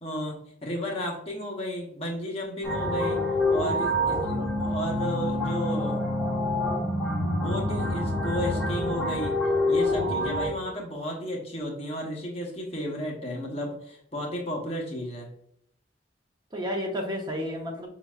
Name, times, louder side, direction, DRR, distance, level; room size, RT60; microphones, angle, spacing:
voice 1, 0.0-3.2 3.5-6.0 6.7-9.4 9.7-15.3, equal, 35° left, 0 dB, 1.0 m, -33 dB
sound 1, 2.6-10.5, left 1 dB, ahead, 1.2 m, -27 dB
voice 2, 4.1-4.5 10.2-10.4 16.5-17.9, equal, 25° right, 1 dB, 0.7 m, -32 dB
5.2 x 3.9 x 2.4 m, 0.68 s
head